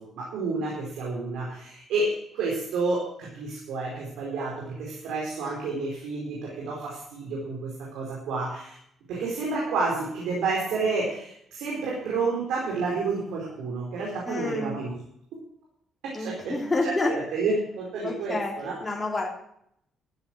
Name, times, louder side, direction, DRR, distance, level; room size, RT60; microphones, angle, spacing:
voice 1, 0.0-8.7 9.1-14.9 16.2-16.5 16.8-18.7, right 3 dB, 85° right, -4 dB, 4.6 m, -30 dB
voice 2, 14.3-14.8 16.1-17.2 18.0-18.6 18.8-19.3, left 2 dB, 25° left, -1 dB, 3.5 m, -28 dB
14.0 x 7.8 x 8.0 m, 0.71 s
cardioid pair, 90°, 0 cm